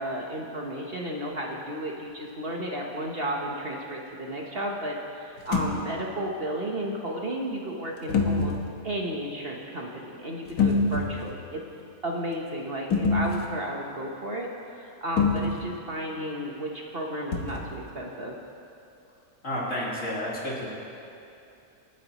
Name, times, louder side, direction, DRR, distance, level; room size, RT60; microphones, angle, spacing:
voice 1, 0.0-8.5 8.8-11.6 12.0-18.4, right 1 dB, 45° right, -1 dB, 1.2 m, -33 dB
sound 1, 5.4-5.8 8.1-8.6 10.5-11.3 12.9-13.5 15.2-15.6 17.3-17.8, left 4 dB, 85° left, 1.7 m, -25 dB
voice 2, 19.4-20.7, left 1 dB, 55° left, -7 dB, 3.6 m, -31 dB
28.0 x 9.5 x 3.0 m, 2.6 s
omnidirectional pair, 1.5 m